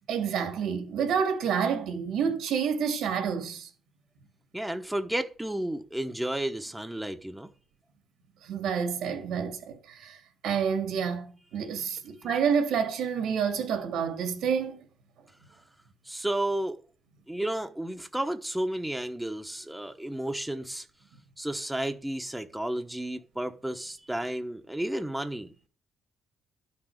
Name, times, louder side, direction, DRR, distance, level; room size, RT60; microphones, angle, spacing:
voice 1, 0.1-3.7 8.4-14.8, right 7 dB, 85° right, 2.6 m, -29 dB
voice 2, 4.5-7.5 12.2-12.3 16.0-16.8 17.3-20.9 21.4-25.5, right 1 dB, 5° right, 1.0 m, -32 dB
11.5 x 6.1 x 6.5 m
cardioid pair, 90°, 0 cm